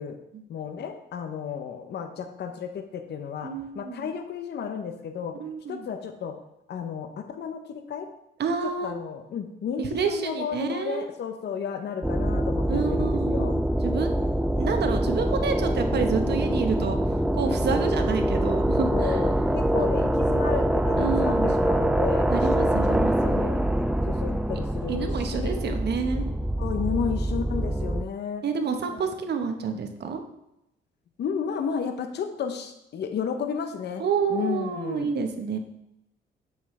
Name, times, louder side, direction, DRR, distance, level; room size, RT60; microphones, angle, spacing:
voice 1, 0.5-5.3 5.7-6.3 6.7-8.1 8.8-13.6 17.7-17.9 18.9-22.3 22.5-22.7 23.2-23.6 24.1-25.8 26.6-28.4 28.9-29.0 31.2-34.0 34.3-35.1, left 7 dB, 60° left, 7 dB, 0.8 m, -33 dB
voice 2, 3.4-4.1 5.4-5.9 8.4-8.9 9.8-11.0 12.7-19.2 19.8-19.9 21.0-21.5 22.3-23.4 24.9-26.3 28.4-30.2 34.0-35.6, right 5 dB, 55° right, 6 dB, 1.0 m, -29 dB
sound 1, 12.0-28.0, right 1 dB, 5° right, 0.3 m, -24 dB
7.7 x 5.8 x 3.2 m, 0.83 s
cardioid pair, 90°, 20 cm